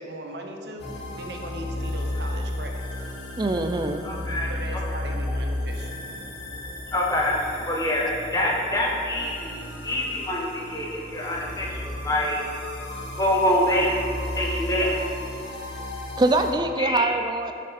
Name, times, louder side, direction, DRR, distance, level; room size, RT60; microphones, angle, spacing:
voice 1, 0.0-2.8 4.5-5.9, right 1 dB, 70° right, 3 dB, 0.9 m, -38 dB
sound 1, 0.8-16.5, left 1 dB, 75° left, 1.9 m, -34 dB
voice 2, 3.4-4.0 16.2-17.5, right 2 dB, 25° right, 7 dB, 0.3 m, -23 dB
voice 3, 4.0-4.5 6.9-12.4 13.2-13.9 14.3-14.9 16.8-17.0, left 1 dB, 20° left, -3 dB, 1.1 m, -25 dB
8.8 x 6.5 x 4.2 m, 2.6 s
head